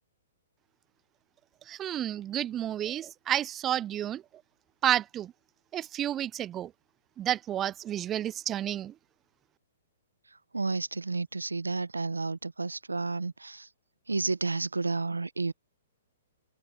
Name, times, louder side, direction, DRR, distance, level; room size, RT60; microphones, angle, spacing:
voice 1, 1.7-4.2 4.8-5.3 5.7-6.7 7.2-8.9, right 11 dB, 20° right, 0.4 m, -30 dB
voice 2, 10.5-13.7 14.1-15.5, right 3 dB, 85° right, 1.0 m, -31 dB
figure-of-eight pair, 120°, 0 cm